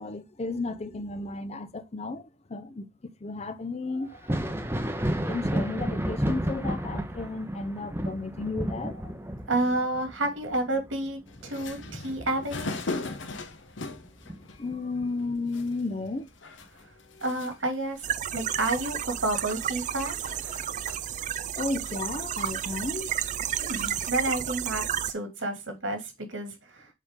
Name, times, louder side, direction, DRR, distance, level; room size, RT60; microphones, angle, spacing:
voice 1, 0.0-4.4 5.1-9.1 14.3-16.3 21.6-23.1, left 3 dB, 35° left, 0.6 m, -34 dB
Thunder, 4.1-13.4 13.8-15.0 16.6-16.7 17.5-17.6, equal, 10° right, 0.7 m, -32 dB
voice 2, 9.5-12.7 17.2-18.1 18.3-20.2 23.6-26.9, right 2 dB, 80° right, 2.3 m, -30 dB
sound 1, 11.3-24.1, left 3 dB, 75° left, 1.0 m, -41 dB
sound 2, 18.0-25.1, right 10 dB, 40° right, 0.3 m, -32 dB
7.3 x 4.1 x 3.6 m
head